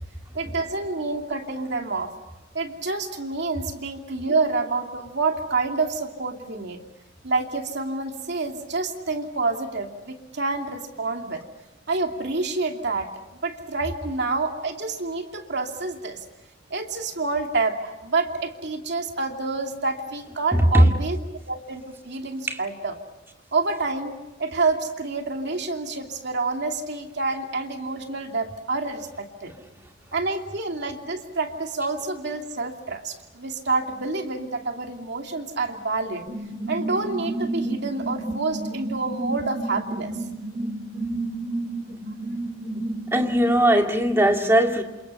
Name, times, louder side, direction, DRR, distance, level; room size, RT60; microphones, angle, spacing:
voice 1, 0.3-2.1 2.5-6.8 7.2-11.4 11.9-13.1 13.4-16.2 16.7-23.0 23.5-29.5 30.1-36.2 36.7-40.1, right 3 dB, 60° right, 3 dB, 2.9 m, -28 dB
voice 2, 20.5-21.0 22.5-22.6 43.1-44.8, right 1 dB, 10° right, 3 dB, 2.1 m, -19 dB
sound 1, 36.3-43.6, right 2 dB, 30° right, 2.8 m, -31 dB
28.5 x 28.0 x 5.7 m, 1.1 s
head